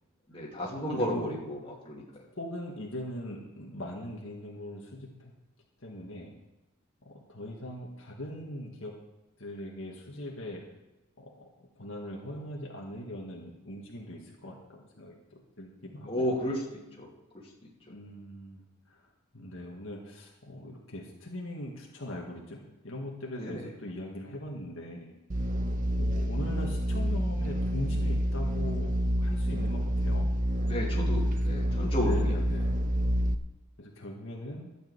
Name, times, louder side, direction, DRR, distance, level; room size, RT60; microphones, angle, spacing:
voice 1, 0.3-1.6 1.8-2.2 16.1-16.6 17.0-17.1 23.4-23.7 30.6-32.4, equal, 25° left, -4 dB, 2.7 m, -32 dB
voice 2, 2.4-5.3 5.8-6.3 7.0-8.9 9.4-10.6 11.2-11.5 11.7-16.3 17.9-19.0 19.3-25.1 25.9-28.9 29.2-30.3 32.0-32.7 33.8-34.7, left 1 dB, 60° left, -1 dB, 1.8 m, -40 dB
sound 1, 25.3-33.3, equal, 35° right, 0.6 m, -28 dB
12.5 x 6.7 x 8.1 m, 1.0 s
head